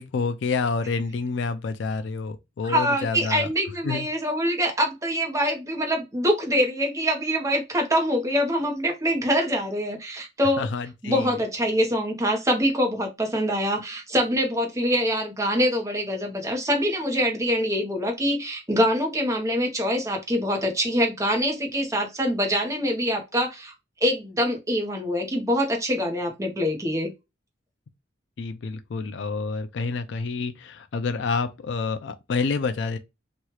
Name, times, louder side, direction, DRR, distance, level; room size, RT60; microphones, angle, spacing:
voice 1, 0.0-3.5 3.8-4.1 10.6-11.3 28.4-33.0, left 4 dB, 65° left, 0.4 m, -28 dB
voice 2, 2.6-10.7 11.0-23.7 24.0-27.1, equal, 15° right, 0.8 m, -24 dB
3.0 x 2.3 x 3.0 m
head